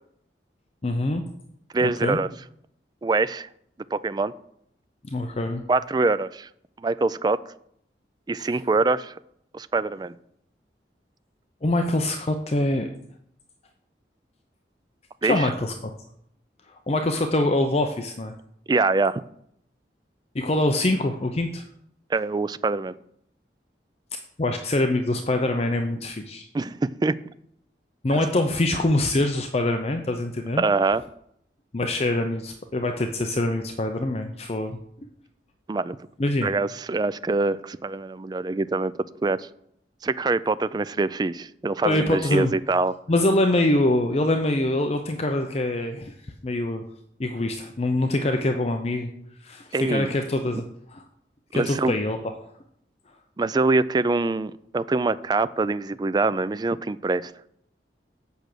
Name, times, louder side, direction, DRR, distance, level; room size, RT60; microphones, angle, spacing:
voice 1, 0.8-1.2 1.8-2.2 5.0-5.6 11.6-12.9 15.2-15.7 16.9-18.3 20.3-21.6 24.4-26.5 28.0-30.6 31.7-34.8 36.2-36.5 41.8-42.5 43.1-46.8 47.2-49.1 49.4-50.6 50.9-51.0 51.5-52.3, left 1 dB, 35° left, 5 dB, 0.6 m, -24 dB
voice 2, 1.7-2.3 3.0-3.5 3.9-4.3 5.7-6.5 6.8-7.4 8.3-9.2 9.5-10.1 15.2-15.5 18.7-19.2 22.1-22.9 26.5-27.2 28.1-28.3 30.6-31.0 35.7-36.0 36.4-38.9 39.2-39.5 40.0-42.9 49.7-50.1 51.5-51.9 53.4-57.3, right 3 dB, 25° right, 16 dB, 0.3 m, -24 dB
8.1 x 6.1 x 6.7 m, 0.73 s
head